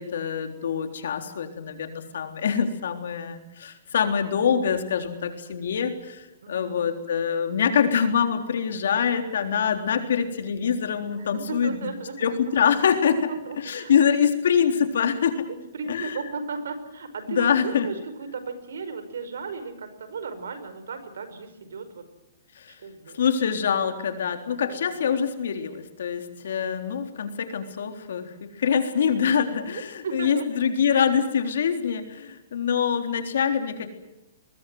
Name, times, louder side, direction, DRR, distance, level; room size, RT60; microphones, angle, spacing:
voice 1, 0.0-11.9 12.2-13.2 13.6-15.5 15.9-16.2 17.3-17.9 22.6-22.8 23.1-33.9, left 7 dB, 70° left, 6 dB, 3.6 m, -25 dB
voice 2, 6.4-6.8 11.2-12.3 13.5-13.9 15.5-22.1 22.7-23.2 24.6-24.8 26.4-26.8 29.7-30.5, right 4 dB, 85° right, 11 dB, 5.3 m, -35 dB
25.0 x 21.0 x 7.9 m, 0.93 s
hypercardioid pair, 165°, 0 cm